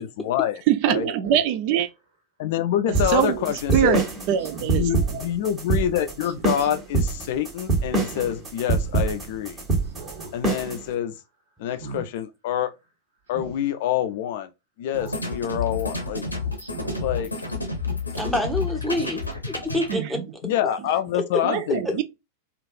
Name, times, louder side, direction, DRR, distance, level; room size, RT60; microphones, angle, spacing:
voice 1, 0.0-1.1 2.4-4.0 4.8-9.7 10.3-11.1 11.6-12.7 13.3-14.5 14.8-16.2 17.0-17.3 20.4-22.0, left 10 dB, 50° left, 0.4 m, -26 dB
voice 2, 0.7-1.9 3.1-3.4 3.7-5.2 19.9-20.2 21.4-22.0, right 10 dB, 45° right, 0.4 m, -23 dB
Speech synthesizer, 1.2-1.4 2.9-3.2 4.4-4.9 6.2-6.7 8.0-8.5 8.9-9.0 9.8-10.4 10.7-11.0 11.7-12.1 13.3-13.6 14.9-15.3 15.8-15.9 16.6-17.1 17.5-17.6, right 3 dB, 65° right, 1.0 m, -40 dB
sound 1, 2.9-10.8, right 3 dB, 25° right, 1.3 m, -24 dB
sound 2, 14.9-19.9, left 3 dB, 85° left, 0.7 m, -30 dB
voice 3, 18.2-19.2 19.5-20.2 21.1-21.2 21.8-21.9, left 1 dB, ahead, 0.8 m, -26 dB
3.2 x 2.4 x 2.5 m
figure-of-eight pair, 90°, 0 cm